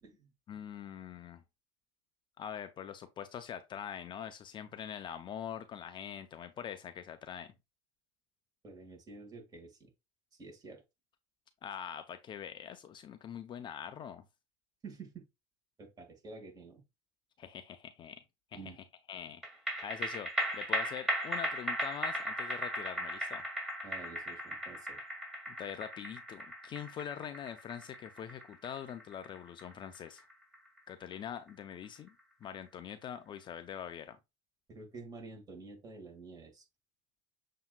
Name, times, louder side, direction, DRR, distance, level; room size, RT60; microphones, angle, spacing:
voice 1, 0.5-1.4 2.4-7.5 11.6-14.2 17.4-18.2 18.5-19.4 19.8-23.4 25.5-30.2 30.9-32.1 32.4-34.2, left 9 dB, 35° left, 0.5 m, -43 dB
voice 2, 8.6-9.9 10.3-10.8 14.8-15.2 15.8-16.8 18.5-18.8 23.8-25.0 34.7-36.7, right 3 dB, 25° right, 1.8 m, -49 dB
sound 1, 19.4-32.1 32.4-32.5, right 1 dB, 5° right, 2.1 m, -38 dB
7.0 x 2.8 x 2.2 m
hypercardioid pair, 85°, 15 cm